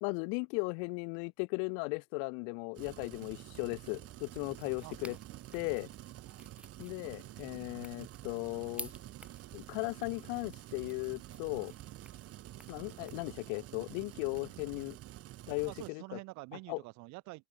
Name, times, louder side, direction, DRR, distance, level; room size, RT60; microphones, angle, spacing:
voice 1, 0.0-5.2 5.5-5.9 6.8-8.9 9.5-11.7 12.7-15.0 15.5-16.2 16.7-16.8, left 40 dB or more, 85° left, 0.4 m, -37 dB
sound 1, 2.7-15.9, right 14 dB, 50° right, 1.5 m, -49 dB
sound 2, 4.2-13.2, right 1 dB, 5° right, 0.6 m, -54 dB
voice 2, 4.5-5.4 6.2-6.4 15.7-17.5, right 24 dB, 70° right, 1.2 m, -49 dB
cardioid pair, 120°, 30 cm